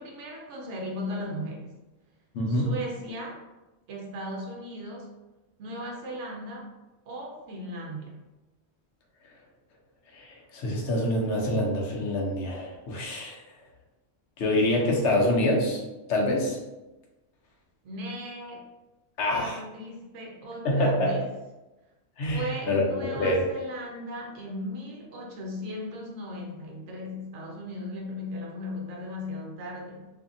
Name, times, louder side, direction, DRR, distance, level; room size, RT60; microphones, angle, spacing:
voice 1, 0.0-1.7 2.5-3.5 3.9-5.1 5.6-6.7 7.1-8.2 17.8-18.6 19.3-21.3 22.3-30.1, equal, 70° right, -1 dB, 1.0 m, -37 dB
voice 2, 2.3-2.7 10.1-13.4 14.4-15.8 16.1-16.6 19.2-19.6 20.6-21.2 22.2-22.8 23.1-23.4, left 1 dB, 70° left, -1 dB, 0.9 m, -26 dB
2.6 x 2.5 x 2.5 m, 1.1 s
omnidirectional pair, 1.3 m